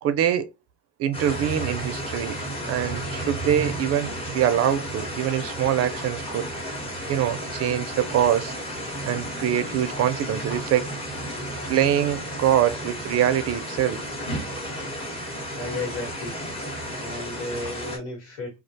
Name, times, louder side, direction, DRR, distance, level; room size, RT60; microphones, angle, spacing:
voice 1, 0.0-0.5 1.0-2.4 2.7-6.5 7.1-8.5 9.1-10.9 11.7-14.0, right 10 dB, 45° right, 0.4 m, -24 dB
sound 1, 1.1-18.0, equal, 15° left, 0.9 m, -33 dB
voice 2, 15.5-16.4 17.0-18.6, left 2 dB, 80° left, 1.4 m, -34 dB
2.3 x 2.1 x 2.6 m
cardioid pair, 120°, 33 cm